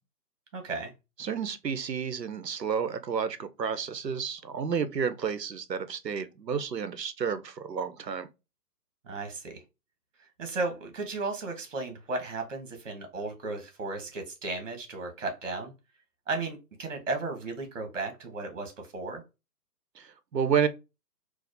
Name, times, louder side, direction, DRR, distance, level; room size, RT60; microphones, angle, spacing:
voice 1, 0.5-0.9 9.0-9.6 10.4-15.7 16.3-19.2, right 3 dB, 50° right, 1.3 m, -35 dB
voice 2, 1.2-8.3 20.0-20.7, right 7 dB, 75° right, 0.7 m, -31 dB
4.1 x 2.4 x 2.6 m
figure-of-eight pair, 135°, 50 cm